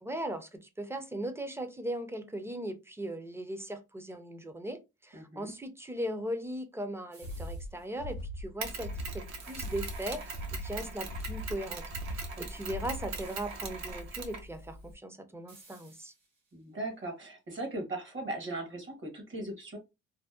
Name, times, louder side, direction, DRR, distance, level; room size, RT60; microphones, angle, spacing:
voice 1, 0.0-11.8 12.1-16.1, right 1 dB, 10° right, 0.4 m, -38 dB
voice 2, 5.1-5.5 12.4-12.5 16.5-19.8, right 2 dB, 40° right, 0.9 m, -38 dB
sound 1, 7.1-7.9 9.4-10.8 13.1-13.9 15.5-16.5, right 3 dB, 90° right, 1.2 m, -58 dB
sound 2, 7.2-13.3, equal, 85° left, 0.5 m, -40 dB
Mechanisms, 8.6-14.9, right 4 dB, 65° right, 0.7 m, -41 dB
2.6 x 2.0 x 2.3 m
cardioid pair, 90°, 30 cm